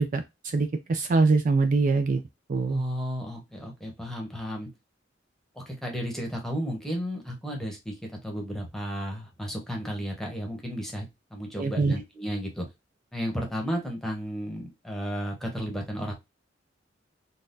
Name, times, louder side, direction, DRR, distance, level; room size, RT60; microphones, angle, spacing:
voice 1, 0.0-2.2 2.5-2.8 11.6-11.9, right 3 dB, 45° right, 7 dB, 0.4 m, -24 dB
voice 2, 2.7-4.7 5.5-12.7 13.1-16.1, equal, ahead, 1 dB, 1.0 m, -33 dB
3.9 x 2.3 x 2.5 m, 0.22 s
head